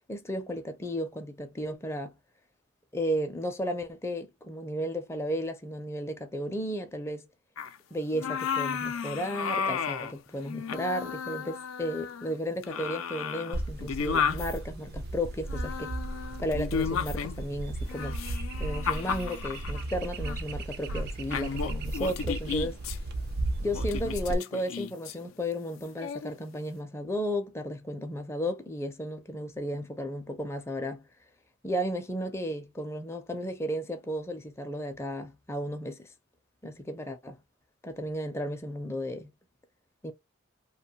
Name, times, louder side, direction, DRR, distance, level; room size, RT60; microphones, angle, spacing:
voice 1, 0.1-2.1 2.9-7.3 7.9-15.9 16.4-18.2 18.6-22.8 23.6-31.0 31.6-36.1 36.6-37.4 37.8-39.3 40.0-40.1, equal, 15° left, 0.4 m, -34 dB
sound 1, 7.6-7.7 8.1-10.1 10.4-12.3 12.6-14.6 15.5-17.5 17.9-19.8 20.2-20.4 20.9-21.0 21.3-23.0 23.7-25.1 26.0-26.3, left 6 dB, 80° left, 0.4 m, -33 dB
sound 2, 13.5-24.4, right 2 dB, 50° right, 0.4 m, -35 dB
2.6 x 2.2 x 2.7 m
head